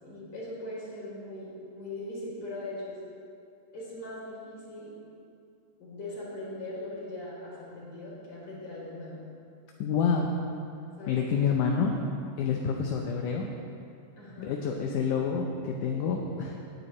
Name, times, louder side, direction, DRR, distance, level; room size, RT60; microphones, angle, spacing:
voice 1, 0.0-3.0 3.7-4.9 5.8-9.2 11.0-11.2 14.2-14.5, left 1 dB, 40° left, -6 dB, 4.2 m, -40 dB
voice 2, 9.8-10.3 11.1-11.9 12.4-13.5 14.4-16.5, left 6 dB, 75° left, 1 dB, 2.1 m, -28 dB
18.5 x 9.5 x 3.2 m, 2.5 s
omnidirectional pair, 4.0 m